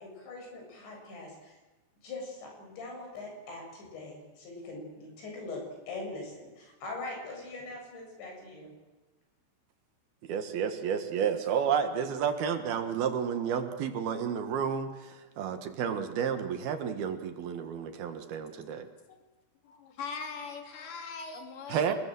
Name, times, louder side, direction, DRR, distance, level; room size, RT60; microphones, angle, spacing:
voice 1, 0.0-1.6 2.0-8.7, left 2 dB, 90° left, 1 dB, 10.0 m, -42 dB
voice 2, 10.3-18.9 21.7-21.9, right 7 dB, 65° right, 8 dB, 3.3 m, -31 dB
voice 3, 19.6-22.0, left 5 dB, 50° left, 4 dB, 4.4 m, -41 dB
27.5 x 21.5 x 7.8 m, 1.1 s
omnidirectional pair, 5.0 m